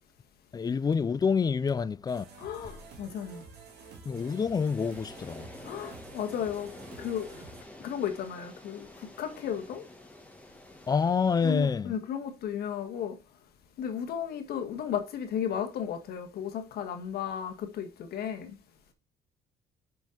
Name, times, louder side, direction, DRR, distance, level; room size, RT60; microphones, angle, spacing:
voice 1, 0.5-2.3 4.1-5.5 10.9-11.9, left 5 dB, 25° left, 0.4 m, -27 dB
sound 1, 2.1-7.6, right 5 dB, 75° right, 2.3 m, -50 dB
voice 2, 2.4-3.4 5.6-6.7 7.0-7.3 7.8-8.9 9.2-9.8 11.4-13.2 13.8-18.5, left 8 dB, 70° left, 1.5 m, -34 dB
sound 2, 4.1-11.6, left 1 dB, 10° left, 1.8 m, -49 dB
5.6 x 5.3 x 5.1 m
cardioid pair, 110°, 17 cm